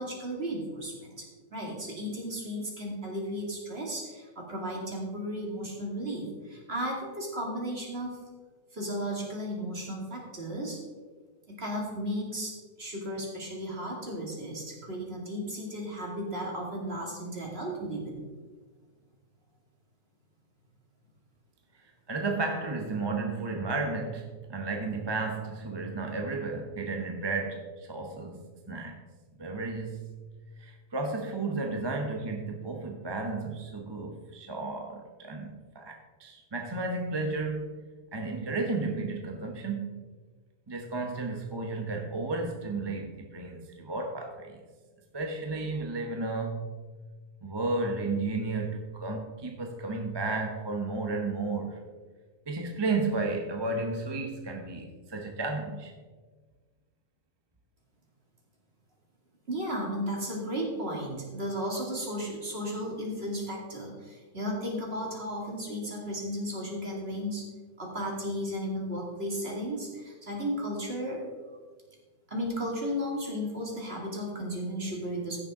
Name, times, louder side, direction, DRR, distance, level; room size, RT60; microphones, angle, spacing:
voice 1, 0.0-8.2 8.7-10.8 11.5-18.2 59.5-67.4 67.8-71.2 72.3-75.4, equal, 40° right, -1 dB, 2.6 m, -34 dB
voice 2, 21.7-29.0 29.4-30.2 30.6-37.8 38.1-40.1 40.7-44.6 45.1-46.8 47.4-51.8 52.5-55.9, right 3 dB, 20° right, 2 dB, 0.7 m, -33 dB
16.0 x 6.7 x 3.7 m, 1.4 s
omnidirectional pair, 1.7 m